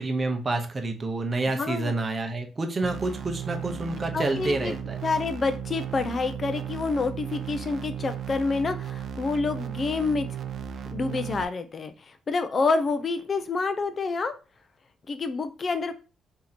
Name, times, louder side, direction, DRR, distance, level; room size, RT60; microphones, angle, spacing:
voice 1, 0.0-5.0, right 2 dB, 35° right, 4 dB, 0.8 m, -28 dB
voice 2, 1.5-1.9 4.1-10.3 10.9-14.3 15.1-15.9, left 4 dB, 40° left, 9 dB, 0.4 m, -28 dB
sound 1, 2.8-11.4, right 8 dB, 60° right, 0.4 m, -35 dB
2.9 x 2.8 x 4.0 m, 0.32 s
cardioid pair, 90°, 0 cm